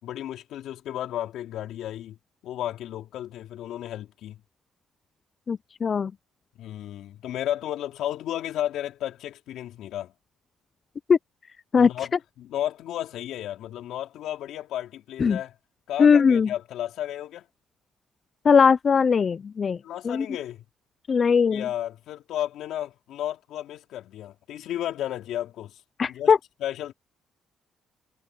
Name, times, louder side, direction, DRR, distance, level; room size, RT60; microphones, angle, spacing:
voice 1, 0.0-2.2 2.4-4.4 6.6-10.1 11.8-15.6 15.9-17.4 19.8-20.6 21.5-25.8 26.1-26.3 26.6-26.9, left 12 dB, 80° left, 3.7 m, -33 dB
voice 2, 5.5-6.1 11.1-11.2 11.7-11.9 15.2-15.4 16.0-16.5 18.4-19.8 20.0-20.3 21.1-21.6 26.0-26.4, left 6 dB, 45° left, 0.4 m, -19 dB
cardioid pair, 90°, 0 cm